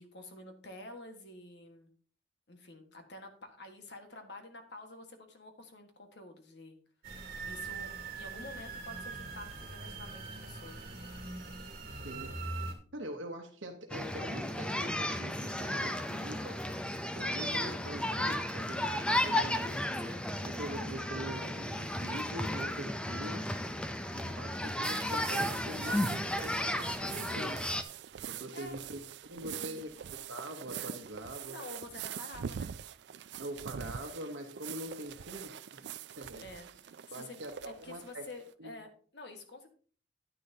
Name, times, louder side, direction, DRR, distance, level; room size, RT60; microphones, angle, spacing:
voice 1, 0.0-1.9 2.5-6.8 7.4-10.8 20.0-20.3 28.5-28.8 29.5-29.9 31.5-32.7 36.3-36.9 37.2-39.7, left 2 dB, 65° left, 1.6 m, -49 dB
sound 1, 7.0-12.7, right 3 dB, 50° right, 2.2 m, -42 dB
voice 2, 12.0-12.4 12.9-16.6 17.1-19.9 20.4-23.5 24.1-27.7 28.3-31.6 33.4-36.4 37.1-38.3 38.6-38.7, right 1 dB, 80° right, 1.1 m, -44 dB
sound 2, 13.9-27.8, left 1 dB, 5° left, 0.5 m, -34 dB
sound 3, 24.8-38.5, right 9 dB, 65° right, 0.4 m, -44 dB
9.9 x 9.8 x 2.8 m
head